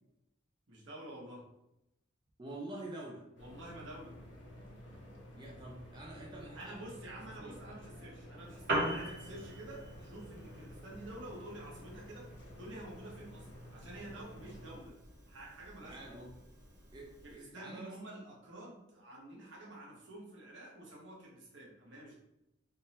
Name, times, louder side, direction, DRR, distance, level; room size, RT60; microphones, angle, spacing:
voice 1, 0.7-1.4 3.4-4.2 6.6-12.3 12.6-15.0 15.3-16.1 17.2-22.2, right 1 dB, 75° right, -4 dB, 1.0 m, -49 dB
voice 2, 2.4-3.3 5.3-6.8 7.4-7.5 15.8-16.3 16.9-17.9, right 2 dB, 20° right, -2 dB, 0.3 m, -47 dB
sound 1, 3.4-14.8, equal, 65° left, 0.7 m, -52 dB
Piano, 8.4-17.4, right 1 dB, 50° right, 1.1 m, -43 dB
3.5 x 2.1 x 2.8 m, 0.87 s
head